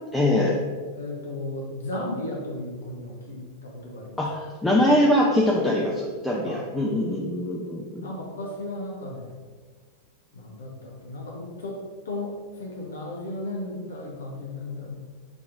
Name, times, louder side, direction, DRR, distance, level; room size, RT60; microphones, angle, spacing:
voice 1, 0.1-0.6 4.2-8.1, left 1 dB, 5° left, -4 dB, 0.5 m, -23 dB
voice 2, 1.0-4.2 6.4-6.6 8.0-9.4 10.3-11.8 12.0-14.9, left 2 dB, 65° left, -2 dB, 0.7 m, -35 dB
5.2 x 2.9 x 2.4 m, 1.5 s
figure-of-eight pair, 90°, 0 cm